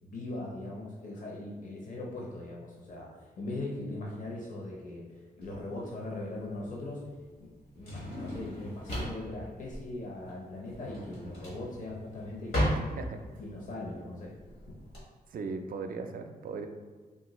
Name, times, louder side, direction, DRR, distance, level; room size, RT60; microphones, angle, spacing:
voice 1, 0.0-7.0 7.4-7.5 7.8-12.9 13.4-14.3 14.7-14.8, left 2 dB, 55° left, -3 dB, 0.7 m, -40 dB
Drawer open or close, 5.4-15.0, equal, 80° left, 1.3 m, -36 dB
voice 2, 15.3-16.7, right 4 dB, 65° right, 6 dB, 0.4 m, -37 dB
3.7 x 2.3 x 3.0 m, 1.5 s
cardioid pair, 80°, 16 cm